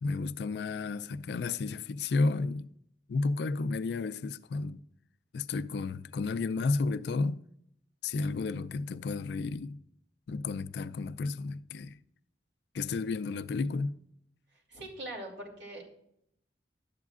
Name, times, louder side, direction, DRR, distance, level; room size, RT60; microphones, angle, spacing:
voice 1, 0.0-2.7 3.1-4.8 5.3-7.4 8.0-9.8 10.3-12.0 12.7-14.0, left 3 dB, 70° left, 0.3 m, -32 dB
voice 2, 14.7-15.9, right 1 dB, 85° right, 2.5 m, -42 dB
11.5 x 8.2 x 2.4 m
head